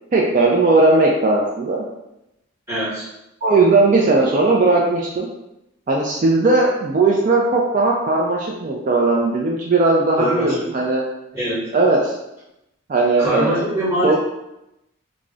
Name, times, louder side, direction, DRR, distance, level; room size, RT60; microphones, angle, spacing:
voice 1, 0.1-1.8 3.4-5.3 5.9-11.0 11.7-12.1 12.9-13.6 14.0-14.1, right 3 dB, 40° right, -2 dB, 0.3 m, -17 dB
voice 2, 2.7-3.1 10.2-10.7 11.3-11.6 13.2-14.1, equal, 10° right, -10 dB, 1.1 m, -23 dB
2.3 x 2.0 x 3.7 m, 0.89 s
head